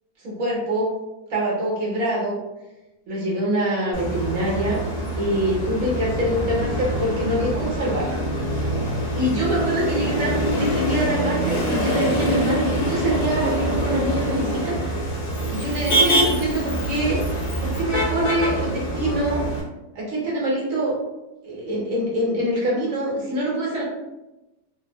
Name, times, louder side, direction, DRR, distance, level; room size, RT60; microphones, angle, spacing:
voice 1, 0.2-0.9 1.3-2.4 3.1-4.8 5.2-8.1 8.5-8.8 9.2-15.0 15.5-17.2 17.6-19.4 19.9-21.0 21.4-23.8, right 1 dB, 55° right, -4 dB, 1.1 m, -25 dB
Motor vehicle (road), 3.9-19.6, right 1 dB, 75° left, 0.3 m, -25 dB
3.4 x 2.3 x 2.2 m, 1.0 s
omnidirectional pair, 1.9 m